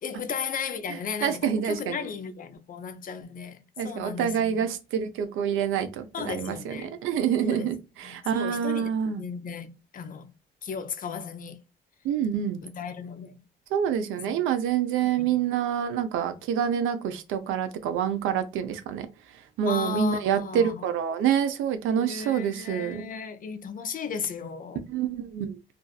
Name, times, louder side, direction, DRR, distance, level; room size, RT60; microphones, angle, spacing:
voice 1, 0.0-4.6 6.1-6.9 7.4-7.7 8.0-10.3 10.6-11.6 12.6-13.4 14.3-14.4 15.2-15.3 19.6-20.9 22.0-24.9, left 6 dB, 45° left, 0.5 m, -35 dB
voice 2, 0.9-2.0 3.8-9.2 12.0-12.6 13.7-19.1 19.6-23.0 24.9-25.6, right 8 dB, 90° right, 0.6 m, -27 dB
2.6 x 2.4 x 2.2 m
cardioid pair, 90°, 20 cm